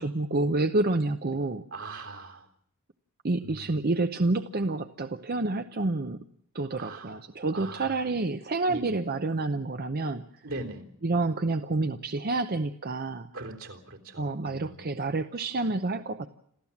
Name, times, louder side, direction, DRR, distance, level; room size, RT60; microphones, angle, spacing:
voice 1, 0.0-1.6 3.2-6.2 6.5-10.4 11.0-13.3 14.2-16.3, right 2 dB, 45° right, 9 dB, 0.8 m, -28 dB
voice 2, 1.7-2.5 3.4-3.9 6.8-7.2 7.5-8.0 8.7-9.0 10.4-10.8 13.3-14.8, right 2 dB, 70° right, 3 dB, 3.7 m, -41 dB
27.5 x 14.5 x 7.2 m, 0.73 s
head